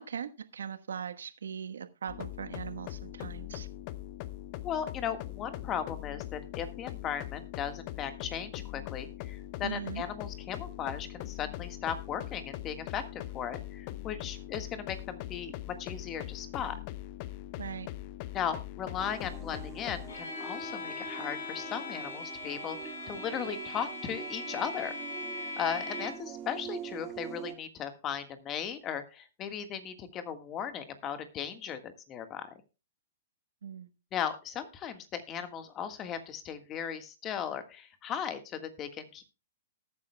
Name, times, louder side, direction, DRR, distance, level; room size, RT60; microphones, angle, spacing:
voice 1, 0.0-3.7 9.6-10.0 17.6-17.9 33.6-33.9, right 7 dB, 75° right, 10 dB, 1.2 m, -40 dB
sound 1, 2.1-20.1, left 15 dB, 45° left, 0.8 m, -41 dB
voice 2, 4.6-16.8 18.3-24.9 25.6-32.5 34.1-39.2, left 8 dB, 30° left, 9 dB, 1.5 m, -37 dB
sound 2, 19.0-27.5, right 8 dB, 25° right, 1.8 m, -45 dB
Bowed string instrument, 20.1-26.4, left 2 dB, 75° left, 4.3 m, -40 dB
18.5 x 9.4 x 2.2 m, 0.29 s
hypercardioid pair, 120°, 0 cm